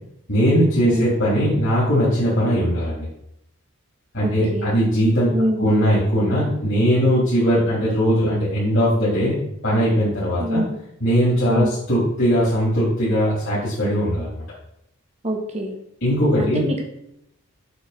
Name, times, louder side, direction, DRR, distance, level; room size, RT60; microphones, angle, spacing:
voice 1, 0.3-3.1 4.1-5.3 5.6-9.3 9.6-10.6 11.0-14.4 16.0-16.6, equal, 55° left, -9 dB, 3.4 m, -19 dB
voice 2, 4.2-4.8 5.3-5.7 10.4-10.8 11.5-11.7 15.2-15.8 16.4-16.8, equal, 30° right, 1 dB, 1.6 m, -25 dB
8.3 x 4.6 x 5.9 m, 0.79 s
head